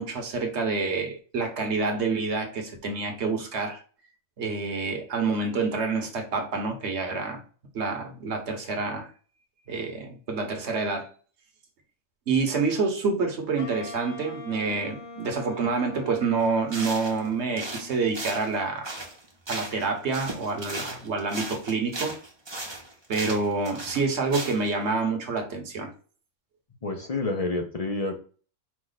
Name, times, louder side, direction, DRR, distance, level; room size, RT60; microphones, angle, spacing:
voice 1, 0.0-3.8 4.4-7.4 7.7-9.1 9.7-11.1 12.3-18.9 19.5-22.2 23.1-25.9, right 4 dB, 55° right, 1.3 m, -27 dB
Wind instrument woodwind instrument, 13.6-18.6, left 3 dB, 80° left, 1.4 m, -43 dB
sound 1, 16.4-16.5 16.7-17.3 17.6-19.9 20.1-24.7, right 2 dB, 25° right, 0.9 m, -36 dB
voice 2, 26.8-28.1, left 2 dB, 40° left, 0.5 m, -28 dB
4.9 x 2.4 x 3.9 m
omnidirectional pair, 1.4 m